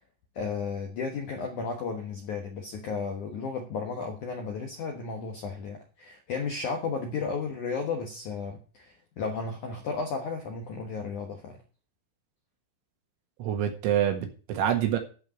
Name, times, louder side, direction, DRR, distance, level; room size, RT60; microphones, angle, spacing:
voice 1, 0.4-11.6, left 5 dB, 70° left, 3 dB, 1.8 m, -34 dB
voice 2, 13.4-15.0, right 10 dB, 75° right, 5 dB, 4.0 m, -26 dB
12.0 x 5.2 x 7.6 m, 0.37 s
omnidirectional pair, 5.5 m